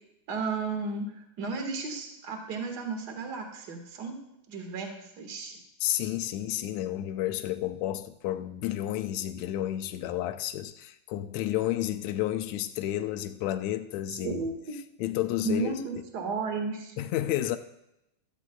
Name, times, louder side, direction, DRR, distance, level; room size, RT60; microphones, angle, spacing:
voice 1, 0.3-4.2 4.5-5.6 14.2-14.7 15.4-16.9, right 4 dB, 40° right, 1.7 m, -33 dB
voice 2, 5.8-14.4 15.0-15.7 17.0-17.6, left 13 dB, 90° left, 1.6 m, -31 dB
15.5 x 13.5 x 2.3 m
omnidirectional pair, 3.8 m